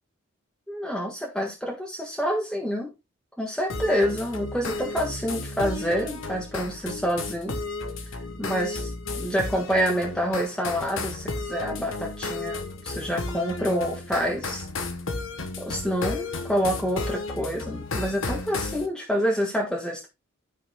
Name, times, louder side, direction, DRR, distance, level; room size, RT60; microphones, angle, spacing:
voice 1, 0.7-2.9 3.4-7.6 8.4-8.9 9.2-14.6 15.6-20.1, equal, 5° left, -1 dB, 1.6 m, -27 dB
sound 1, 3.7-18.9, left 3 dB, 75° left, 1.2 m, -33 dB
13.5 x 5.7 x 2.3 m, 0.24 s
head